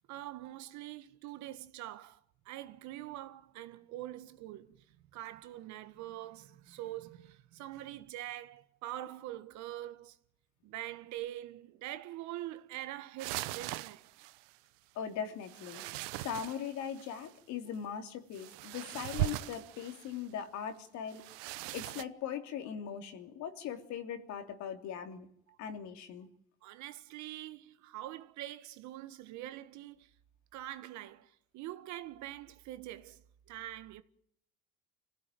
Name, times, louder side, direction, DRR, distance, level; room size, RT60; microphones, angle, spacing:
voice 1, 0.1-10.2 10.6-14.3 25.5-25.6 26.6-30.1 30.5-34.0, right 14 dB, 65° right, 1.7 m, -44 dB
sound 1, 13.2-14.5 15.4-17.3 18.3-20.2 21.1-22.0, right 19 dB, 80° right, 0.9 m, -40 dB
voice 2, 14.9-15.8 16.2-21.2 21.7-25.3 25.6-26.3, left 8 dB, 60° left, 3.2 m, -40 dB
26.0 x 16.5 x 9.2 m
supercardioid pair, 100°, 31 cm